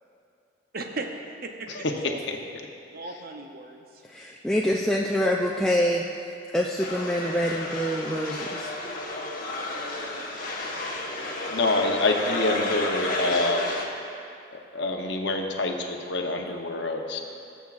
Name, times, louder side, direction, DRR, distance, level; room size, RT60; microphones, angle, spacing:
voice 1, 0.7-1.1 1.4-2.2 2.9-3.9, right 3 dB, 45° right, 3 dB, 0.7 m, -36 dB
voice 2, 4.0-6.0 6.5-8.7, equal, 5° left, -3 dB, 0.3 m, -25 dB
sound 1, 6.8-13.9, left 2 dB, 45° left, 1.1 m, -31 dB
voice 3, 11.5-13.7 14.5-17.3, left 2 dB, 60° left, 3 dB, 0.8 m, -26 dB
20.0 x 7.2 x 2.4 m, 2.6 s
head